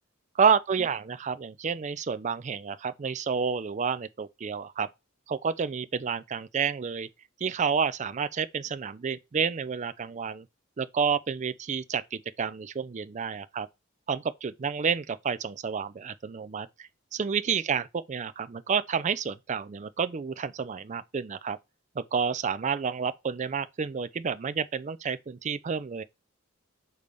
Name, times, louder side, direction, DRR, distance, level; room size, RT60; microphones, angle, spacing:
voice 1, 0.4-4.9 5.3-7.1 7.4-10.4 10.8-13.7 14.1-21.6 22.0-26.0, right 6 dB, 35° right, 0.4 m, -29 dB
6.8 x 3.2 x 5.2 m
head